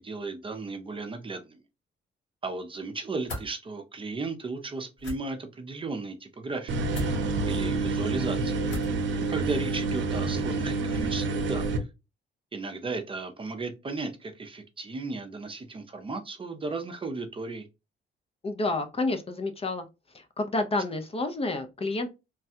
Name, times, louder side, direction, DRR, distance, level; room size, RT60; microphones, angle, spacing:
voice 1, 0.0-1.6 2.4-6.7 7.5-8.6 9.3-11.9 12.5-17.7, right 3 dB, 25° right, 0.6 m, -35 dB
sound 1, 3.3-3.5 5.0-5.2 6.9-7.1 8.7-9.0, equal, 70° left, 1.9 m, -35 dB
sound 2, 6.7-11.8, right 3 dB, 70° right, 0.6 m, -28 dB
voice 2, 18.4-19.9 20.1-22.1, left 2 dB, 30° left, 0.5 m, -29 dB
3.2 x 2.2 x 2.7 m
cardioid pair, 90°, 20 cm